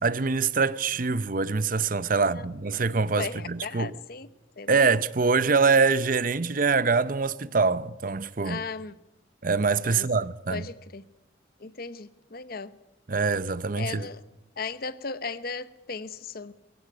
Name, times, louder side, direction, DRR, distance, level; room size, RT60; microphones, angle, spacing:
voice 1, 0.0-4.0 4.7-8.6 9.4-10.7 13.1-14.1, right 4 dB, 45° right, 0.8 m, -24 dB
voice 2, 2.1-2.5 3.2-4.3 4.6-4.8 8.4-8.9 9.8-10.1 10.5-11.0 11.6-12.7 13.8-14.2 14.6-16.5, left 4 dB, 50° left, 1.0 m, -36 dB
23.0 x 17.0 x 9.7 m
head